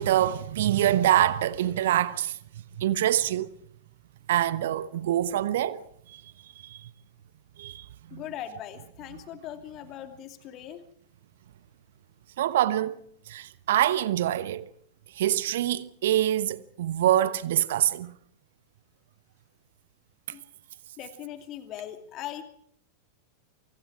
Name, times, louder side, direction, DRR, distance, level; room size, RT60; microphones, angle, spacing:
voice 1, 0.0-2.4 2.8-3.5 4.3-6.9 7.6-8.2 12.4-13.0 13.3-14.7 15.1-18.1, right 12 dB, 55° right, 1.0 m, -25 dB
voice 2, 8.1-10.8 20.3-20.4 21.0-22.4, left 11 dB, 35° left, 2.6 m, -40 dB
28.5 x 26.0 x 4.9 m
figure-of-eight pair, 90°, 0 cm